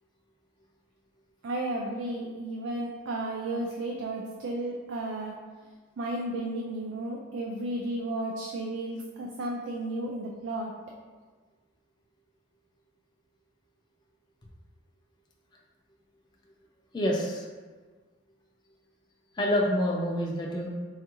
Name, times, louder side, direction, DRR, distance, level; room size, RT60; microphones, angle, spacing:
voice 1, 1.4-5.3 6.0-10.7, right 1 dB, 85° right, -1 dB, 0.4 m, -33 dB
voice 2, 16.9-17.4 19.3-20.7, equal, 20° left, -2 dB, 0.4 m, -27 dB
4.2 x 2.4 x 3.0 m, 1.4 s
head